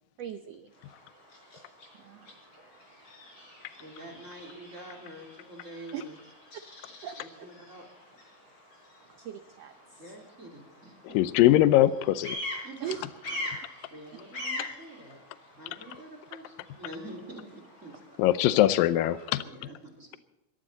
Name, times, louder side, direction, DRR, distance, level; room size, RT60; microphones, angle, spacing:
voice 1, 0.2-0.7 2.0-2.5 5.9-6.0 7.0-7.5 9.2-10.0 12.8-13.0, right 9 dB, 80° right, 9 dB, 1.4 m, -40 dB
Bird vocalization bird call bird song, 0.7-19.4, left 1 dB, 40° left, 6.7 m, -44 dB
voice 2, 3.8-6.2 7.2-7.9 10.0-11.2 12.6-13.6 13.9-15.2 15.6-18.2 19.4-20.2, right 1 dB, 25° right, 3 dB, 2.8 m, -46 dB
voice 3, 11.1-12.4 18.2-19.4, left 14 dB, 85° left, 14 dB, 2.4 m, -21 dB
21.5 x 15.0 x 4.0 m, 0.95 s
omnidirectional pair, 4.0 m